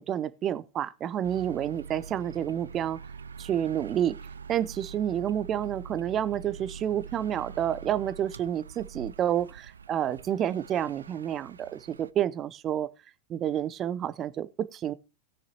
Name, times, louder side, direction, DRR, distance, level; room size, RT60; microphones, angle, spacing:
voice 1, 0.0-3.0 3.4-4.2 4.5-12.9 13.3-14.9, right 10 dB, 30° right, 0.6 m, -29 dB
sound 1, 1.2-12.1, right 6 dB, 70° right, 0.4 m, -44 dB
18.5 x 6.6 x 2.8 m
figure-of-eight pair, 90°, 0 cm